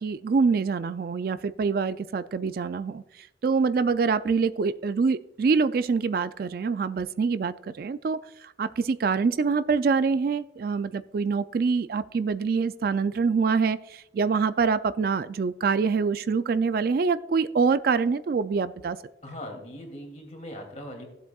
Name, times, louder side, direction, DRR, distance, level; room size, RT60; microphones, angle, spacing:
voice 1, 0.0-3.0 3.4-8.2 8.6-19.0, right 5 dB, 50° right, 14 dB, 0.3 m, -25 dB
voice 2, 19.2-21.1, left 1 dB, 40° left, 2 dB, 2.6 m, -40 dB
16.0 x 8.0 x 2.3 m, 0.92 s
head